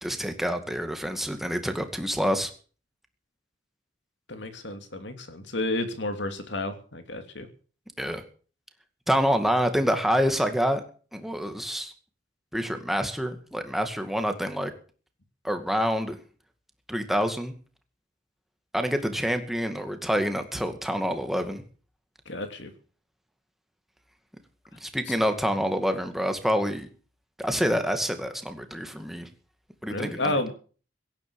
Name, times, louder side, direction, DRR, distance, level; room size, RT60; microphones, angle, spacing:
voice 1, 0.0-2.5 8.0-8.2 9.1-10.8 11.1-11.9 12.5-14.7 15.4-16.2 16.9-17.5 18.7-21.6 24.8-26.9 27.4-29.3 29.8-30.3, equal, ahead, 7 dB, 2.2 m, -27 dB
voice 2, 4.3-7.5 22.3-22.7 25.0-25.1 29.9-30.5, left 2 dB, 65° left, 7 dB, 2.9 m, -31 dB
17.0 x 11.0 x 7.1 m, 0.41 s
head